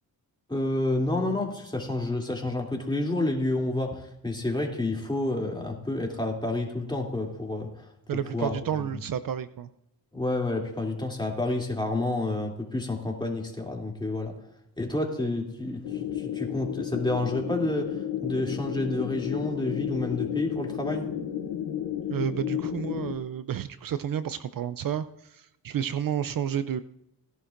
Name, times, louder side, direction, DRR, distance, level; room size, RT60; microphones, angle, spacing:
voice 1, 0.5-7.7 8.3-8.5 10.1-14.3 14.8-21.1, left 2 dB, 10° left, 0 dB, 2.9 m, -29 dB
voice 2, 8.1-9.7 22.1-26.8, right 9 dB, 60° right, 13 dB, 0.5 m, -31 dB
sound 1, 15.8-23.1, left 10 dB, 80° left, 1.0 m, -32 dB
17.5 x 11.0 x 2.6 m, 0.82 s
cardioid pair, 75°, 38 cm